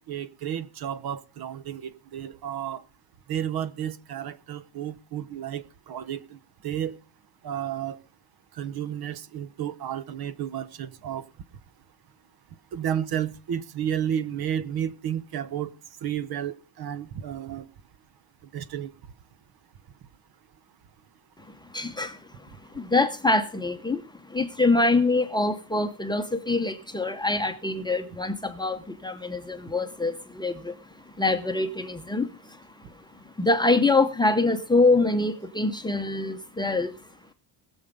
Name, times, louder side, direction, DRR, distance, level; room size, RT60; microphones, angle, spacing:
voice 1, 0.0-2.8 3.3-6.2 6.6-6.9 7.4-8.0 8.6-11.2 12.7-15.7 16.0-17.6 18.5-18.9, right 9 dB, 50° right, 0.9 m, -32 dB
voice 2, 21.7-24.0 24.3-30.8 31.1-32.6 33.4-36.9, left 2 dB, 10° left, 0.8 m, -25 dB
19.5 x 7.1 x 5.3 m
cardioid pair, 175°, 46 cm